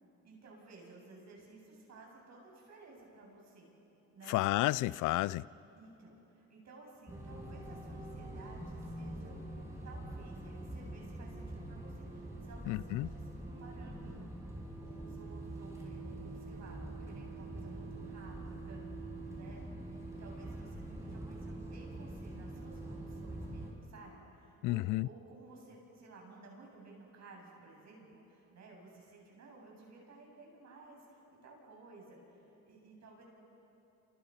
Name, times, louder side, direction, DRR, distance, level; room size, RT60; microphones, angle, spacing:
voice 1, 0.2-3.7 4.1-4.4 5.8-9.3 9.8-14.3 14.8-19.6 19.9-33.2, right 3 dB, 60° right, -1 dB, 7.9 m, -55 dB
voice 2, 4.3-5.4 12.7-13.1 24.6-25.1, left 17 dB, 85° left, 21 dB, 0.5 m, -31 dB
sound 1, 7.1-23.7, right 1 dB, 10° right, 6.0 m, -44 dB
29.0 x 28.5 x 5.7 m, 3.0 s
cardioid pair, 90°, 30 cm